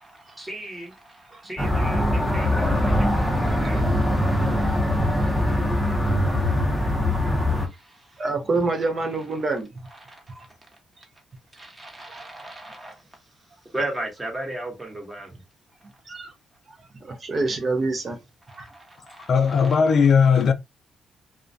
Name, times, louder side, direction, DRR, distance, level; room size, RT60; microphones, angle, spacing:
voice 1, 0.0-6.8 7.1-8.2 9.9-10.6 11.6-13.3 13.6-15.4 18.4-19.8, right 1 dB, 15° right, 1.1 m, -38 dB
sound 1, 1.6-7.7, left 1 dB, 5° left, 0.7 m, -22 dB
voice 2, 8.2-9.7 10.3-10.4 12.1-12.2 16.1-16.3 17.0-18.2 18.6-18.7, right 3 dB, 40° right, 0.6 m, -26 dB
voice 3, 19.3-20.5, left 6 dB, 55° left, 0.3 m, -17 dB
2.2 x 2.1 x 2.6 m
cardioid pair, 90°, 0 cm